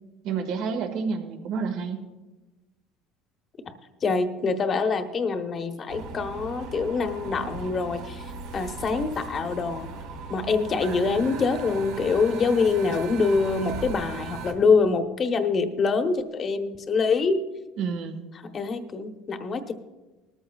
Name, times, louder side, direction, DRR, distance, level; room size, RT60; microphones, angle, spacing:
voice 1, 0.2-2.1 17.8-18.2, right 5 dB, 65° right, 4 dB, 1.8 m, -29 dB
voice 2, 4.0-8.2 8.5-9.9 10.3-17.4 18.5-19.7, left 4 dB, 35° left, 7 dB, 1.0 m, -25 dB
sound 1, 5.9-14.5, right 4 dB, 85° right, 1.8 m, -38 dB
19.5 x 13.5 x 2.4 m, 1.1 s
cardioid pair, 130°, 0 cm